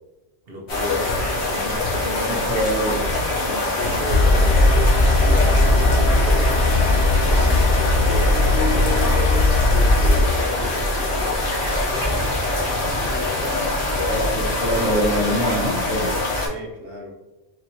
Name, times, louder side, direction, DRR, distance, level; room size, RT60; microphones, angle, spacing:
voice 1, 0.5-2.4 3.4-13.6 16.4-17.1, equal, 65° right, -1 dB, 0.9 m, -35 dB
sound 1, 0.7-16.5, left 2 dB, 80° left, 1.4 m, -24 dB
sound 2, 1.1-9.1, left 1 dB, 55° left, 0.6 m, -34 dB
voice 2, 2.3-3.1 14.1-16.2, equal, 10° right, -5 dB, 1.0 m, -24 dB
sound 3, 4.1-10.3, left 2 dB, 35° left, 1.0 m, -17 dB
4.1 x 2.9 x 2.7 m, 1.1 s
omnidirectional pair, 1.1 m